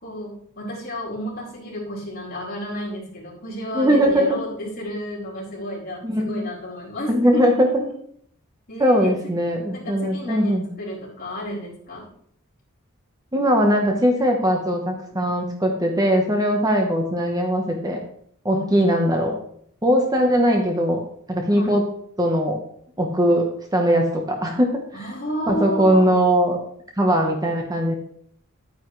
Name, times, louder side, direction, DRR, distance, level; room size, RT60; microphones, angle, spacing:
voice 1, 0.0-7.9 8.7-9.1 9.7-12.0 18.5-18.7 21.5-21.7 24.9-26.2, equal, 45° left, -6 dB, 4.4 m, -32 dB
voice 2, 3.7-4.4 6.0-6.4 7.1-7.7 8.8-10.7 13.3-18.0 18.4-19.4 19.8-21.0 21.3-21.8 22.2-22.6 23.0-23.4 23.7-25.1 25.5-26.6 27.0-27.9, equal, 15° right, 2 dB, 1.1 m, -20 dB
11.0 x 9.4 x 3.3 m, 0.65 s
head